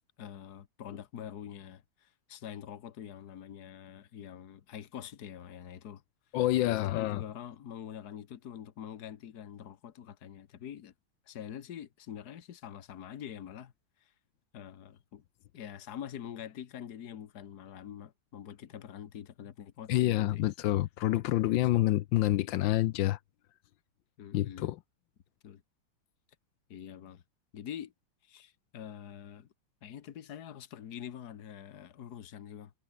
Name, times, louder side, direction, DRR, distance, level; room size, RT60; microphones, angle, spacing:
voice 1, 0.2-6.0 6.7-10.9 11.3-13.7 14.5-15.2 15.5-20.5 21.6-21.8 24.2-24.7 25.4-25.6 26.7-27.2 27.5-27.9 28.2-29.5 29.8-32.7, left 9 dB, 50° left, 1.6 m, -45 dB
voice 2, 6.3-7.2 19.9-23.2 24.3-24.8, left 15 dB, 70° left, 1.3 m, -27 dB
omnidirectional pair, 2.3 m